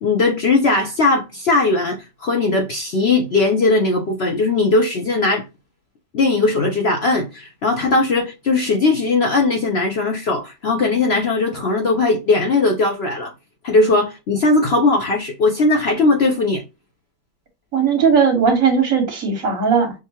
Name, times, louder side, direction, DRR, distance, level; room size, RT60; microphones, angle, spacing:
voice 1, 0.0-5.5 6.1-13.3 13.6-16.6, left 3 dB, 70° left, 0.6 m, -18 dB
voice 2, 17.7-19.9, right 6 dB, 50° right, 1.8 m, -17 dB
6.2 x 2.2 x 2.8 m
omnidirectional pair, 1.9 m